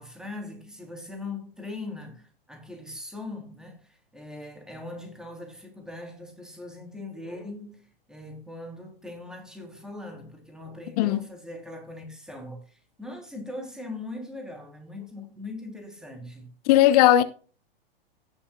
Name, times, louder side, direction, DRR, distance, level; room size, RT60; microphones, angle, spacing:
voice 1, 0.0-16.5, left 2 dB, ahead, 3.2 m, -40 dB
voice 2, 16.7-17.2, left 13 dB, 40° left, 0.8 m, -17 dB
17.0 x 7.1 x 2.3 m
figure-of-eight pair, 105°, 30 cm